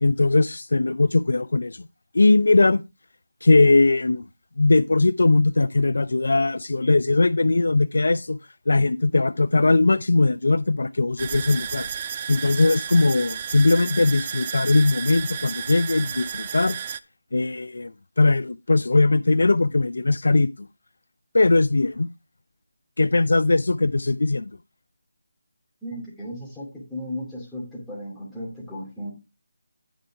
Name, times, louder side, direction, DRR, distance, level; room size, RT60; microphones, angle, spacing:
voice 1, 0.0-1.9 2.1-2.8 3.4-4.2 4.6-8.4 8.7-11.9 12.3-16.8 17.3-20.7 21.3-22.1 23.0-24.5, left 2 dB, 70° left, 0.4 m, -20 dB
sound 1, 11.2-17.0, right 8 dB, 30° right, 0.4 m, -32 dB
voice 2, 25.8-29.1, left 1 dB, 5° left, 2.5 m, -35 dB
9.2 x 5.0 x 4.7 m
figure-of-eight pair, 165°, 0 cm